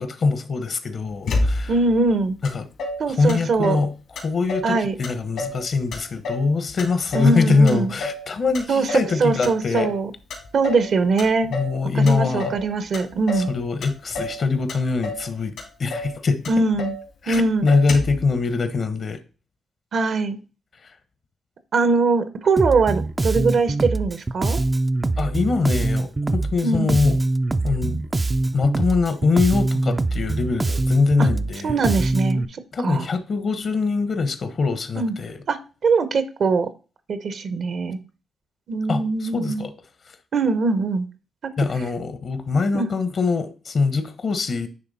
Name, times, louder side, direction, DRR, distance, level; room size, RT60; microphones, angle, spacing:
voice 1, 0.0-1.7 2.5-2.7 3.1-3.9 4.2-9.9 11.5-12.5 13.3-15.5 15.8-16.6 17.2-19.2 25.2-27.2 27.6-28.0 28.5-31.8 32.7-35.4 38.9-39.7 41.6-44.7, left 4 dB, 55° left, 1.1 m, -23 dB
Motor vehicle (road), 1.3-1.9 2.4-2.5 2.8-3.9 4.2-4.8 5.0-5.6 5.9-7.4 7.7-8.3 8.5-9.1 9.4-10.0 10.3-10.9 11.2-11.8 12.1-12.6 12.9-13.5 13.8-14.4 14.7-15.3 15.6-15.7 15.9-16.2 16.4-17.0 17.3-17.4 17.7-18.2, left 2 dB, 80° left, 2.6 m, -29 dB
voice 2, 1.7-2.4 3.0-3.8 4.6-5.0 7.1-7.9 8.7-10.1 10.5-11.5 11.9-13.5 16.5-16.9 17.3-17.7 19.9-20.4 21.7-24.6 26.6-27.0 31.2-31.3 31.6-33.1 35.0-35.2 35.5-36.7 37.1-38.0 38.7-39.7 40.3-41.1 42.7-42.9, right 4 dB, 60° right, 0.9 m, -22 dB
Bass guitar, 22.6-32.5, right 2 dB, 25° right, 0.4 m, -23 dB
9.8 x 3.3 x 4.1 m
cardioid pair, 75°, 0 cm